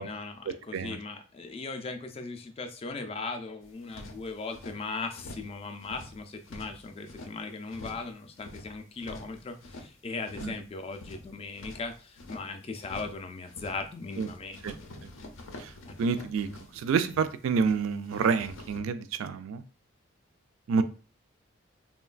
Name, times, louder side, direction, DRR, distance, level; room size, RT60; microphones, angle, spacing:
voice 1, 0.0-14.9 15.9-16.0, left 3 dB, 30° left, 7 dB, 0.3 m, -38 dB
sound 1, 3.6-4.8 5.1-5.5 5.8-7.3 7.7-8.1 8.3-9.9 10.2-10.6 10.9-12.4 12.8-13.2 13.5-13.8 14.1-17.8 18.0-18.8, left 1 dB, 80° left, 0.5 m, -46 dB
voice 2, 16.0-19.6 20.7-20.8, right 5 dB, 80° right, 13 dB, 0.3 m, -28 dB
3.1 x 2.2 x 2.4 m, 0.36 s
head